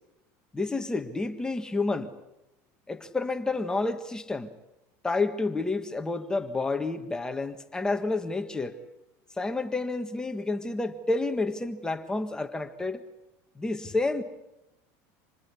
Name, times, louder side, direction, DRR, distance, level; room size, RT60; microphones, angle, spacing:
voice 1, 0.5-2.1 2.9-4.5 5.0-8.8 9.4-13.0 13.5-14.2, left 3 dB, 10° left, 1.5 m, -29 dB
26.5 x 20.0 x 8.4 m
supercardioid pair, 145°, 8 cm